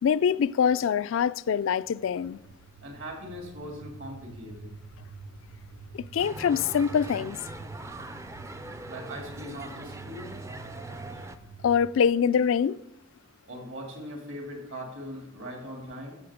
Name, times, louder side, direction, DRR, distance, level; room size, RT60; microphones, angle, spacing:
voice 1, 0.0-2.4 5.9-7.4 11.6-12.8, left 7 dB, 65° left, 0.3 m, -24 dB
sound 1, 1.8-11.9, right 3 dB, 90° right, 0.7 m, -47 dB
voice 2, 2.8-4.7 8.9-10.3 13.5-16.2, equal, 65° right, 2.7 m, -40 dB
sound 2, 6.2-11.4, right 2 dB, 15° right, 0.4 m, -41 dB
14.5 x 6.5 x 5.0 m
head